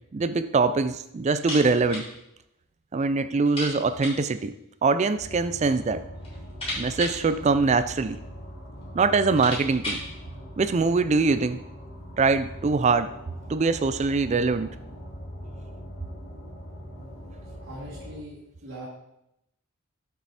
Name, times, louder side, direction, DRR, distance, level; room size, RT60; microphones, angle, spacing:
voice 1, 0.1-2.1 2.9-4.5 4.8-6.0 6.8-8.2 8.9-10.0 10.6-11.6 12.2-13.1 13.5-14.7, right 4 dB, 30° right, 13 dB, 0.3 m, -23 dB
sound 1, 1.3-2.1 2.4-2.5 2.8-2.9 3.4-4.3 5.2-5.8 6.1-8.1 8.8-8.9 9.2-10.1, left 1 dB, 25° left, 3.2 m, -36 dB
sound 2, 5.1-18.2, equal, 45° left, 2.1 m, -42 dB
voice 2, 17.5-18.9, right 1 dB, 60° right, -7 dB, 2.2 m, -41 dB
7.4 x 6.0 x 4.2 m, 0.83 s
head